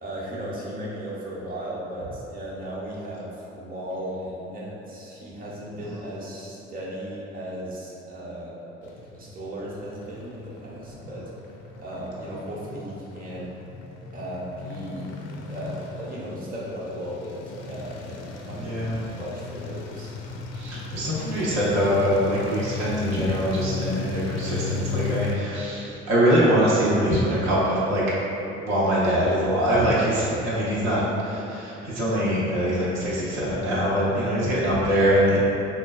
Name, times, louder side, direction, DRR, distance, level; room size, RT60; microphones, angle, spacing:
voice 1, 0.0-11.3 11.8-13.5 14.1-15.2 15.5-18.9 19.2-20.4 20.7-21.0, equal, 25° right, -6 dB, 0.8 m, -36 dB
sound 1, 8.8-25.4, left 4 dB, 50° left, 0.4 m, -36 dB
voice 2, 18.6-19.0 20.5-28.0 28.6-35.4, equal, 70° right, -8 dB, 0.7 m, -23 dB
3.8 x 2.3 x 2.3 m, 3.0 s
figure-of-eight pair, 50°, 35 cm